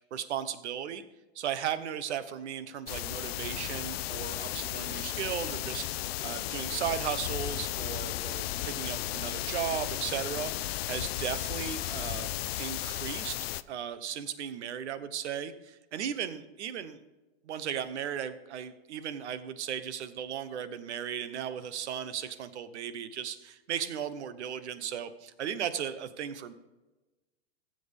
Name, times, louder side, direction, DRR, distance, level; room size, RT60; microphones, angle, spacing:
voice 1, 0.1-1.0 1.3-12.3 12.6-13.4 13.7-17.0 17.4-26.5, right 9 dB, 80° right, 13 dB, 1.0 m, -36 dB
sound 1, 2.9-13.6, left 15 dB, 60° left, 0.5 m, -34 dB
15.0 x 7.8 x 3.5 m, 1.1 s
supercardioid pair, 145°, 34 cm